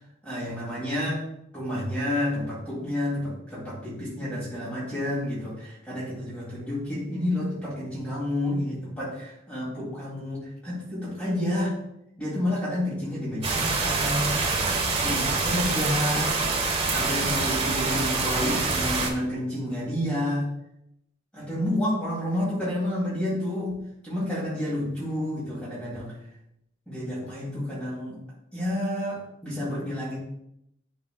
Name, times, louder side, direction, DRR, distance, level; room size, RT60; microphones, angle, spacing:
voice 1, 0.2-1.2 1.5-11.8 12.2-14.4 15.0-16.3 16.9-20.5 21.3-26.1 26.9-28.2 28.5-30.2, left 1 dB, 5° left, -9 dB, 2.5 m, -30 dB
sound 1, 13.4-19.1, right 3 dB, 30° right, 1.1 m, -26 dB
11.0 x 4.0 x 2.3 m, 0.77 s
head